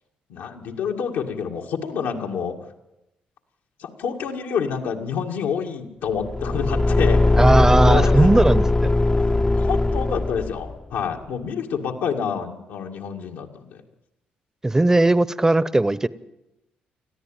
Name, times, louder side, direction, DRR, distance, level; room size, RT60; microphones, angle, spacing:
voice 1, 0.3-2.6 3.8-7.4 7.8-8.3 9.1-13.8, left 7 dB, 85° left, 1 dB, 2.1 m, -28 dB
Car / Engine, 6.2-10.7, left 2 dB, 20° left, 0.7 m, -19 dB
voice 2, 7.4-8.9 14.6-16.1, right 2 dB, 15° right, 17 dB, 0.9 m, -18 dB
20.5 x 14.0 x 9.1 m, 0.93 s
supercardioid pair, 70°, 3 cm